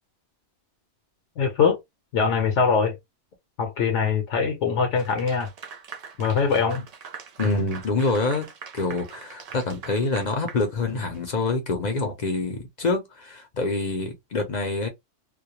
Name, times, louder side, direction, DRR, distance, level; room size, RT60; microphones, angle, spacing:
voice 1, 1.4-1.8 2.1-3.0 3.6-5.5 6.2-6.9, left 5 dB, 75° left, 0.9 m, -22 dB
Clapping / Applause, 5.0-11.3, right 6 dB, 80° right, 0.3 m, -42 dB
voice 2, 7.4-8.5 8.7-14.9, left 3 dB, 50° left, 0.6 m, -26 dB
2.3 x 2.1 x 2.8 m
omnidirectional pair, 1.3 m